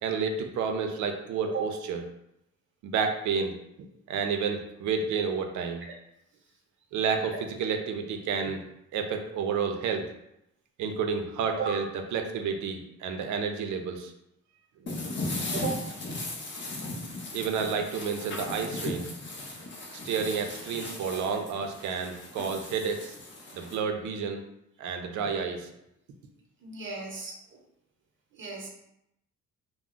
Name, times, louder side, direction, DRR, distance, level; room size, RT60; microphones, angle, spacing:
voice 1, 0.0-2.0 2.8-5.9 6.9-8.6 8.9-10.0 10.8-11.9 12.1-14.1 17.3-19.1 20.1-23.1 23.5-24.4 24.8-25.7, right 6 dB, 75° right, 5 dB, 0.5 m, -30 dB
sound 1, 14.9-23.8, left 2 dB, 40° left, 0.6 m, -37 dB
voice 2, 26.6-27.6 28.4-28.7, right 6 dB, 40° right, -1 dB, 0.8 m, -35 dB
2.2 x 2.0 x 3.7 m, 0.82 s
cardioid pair, 90°, 30 cm